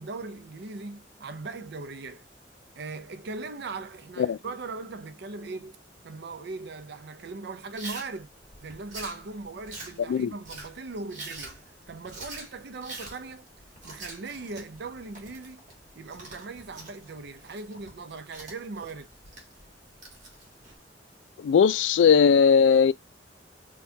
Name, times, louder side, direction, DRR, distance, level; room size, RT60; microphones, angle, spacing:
voice 1, 0.0-2.2 2.8-5.8 6.0-8.3 8.6-11.6 11.9-13.4 13.8-15.6 16.0-19.1, right 3 dB, 65° right, 0.5 m, -39 dB
Chewing mastication, 7.8-20.8, right 2 dB, 45° right, 1.4 m, -45 dB
voice 2, 21.4-22.9, left 6 dB, 75° left, 0.3 m, -19 dB
4.4 x 2.3 x 2.7 m
head